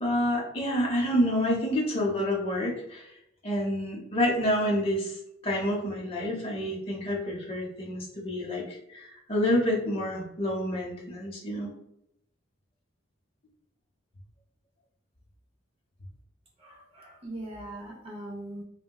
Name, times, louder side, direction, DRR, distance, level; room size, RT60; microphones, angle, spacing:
voice 1, 0.0-3.1 3.4-5.2 5.4-11.7, equal, 30° left, -3 dB, 0.7 m, -28 dB
voice 2, 16.6-18.6, right 1 dB, 30° right, -1 dB, 0.5 m, -40 dB
3.7 x 2.1 x 2.2 m, 0.80 s
head